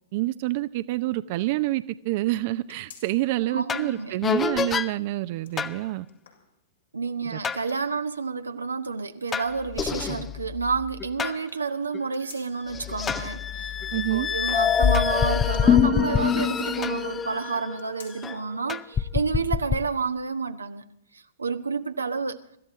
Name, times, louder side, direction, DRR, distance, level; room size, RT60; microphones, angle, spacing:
voice 1, 0.1-6.1 7.2-7.4 13.9-14.3, right 17 dB, 50° right, 0.6 m, -27 dB
sound 1, 2.7-3.5 3.9-4.0 5.2-7.0 7.5-8.3 9.3-10.3 11.8-12.8 15.4-16.9 17.7-18.5 18.9-19.0 20.0-20.1, left 6 dB, 80° left, 5.4 m, -53 dB
voice 2, 3.5-4.2 6.9-13.8 14.1-20.8 21.1-22.4, right 5 dB, 90° right, 1.1 m, -30 dB
sound 2, 3.7-3.9 4.2-4.9 5.6-5.8 7.4-7.6 9.3-11.4 11.9-12.0 12.7-18.4 18.7-19.8, left 7 dB, 20° left, 0.7 m, -25 dB
25.0 x 13.5 x 3.7 m
hypercardioid pair, 115°, 0 cm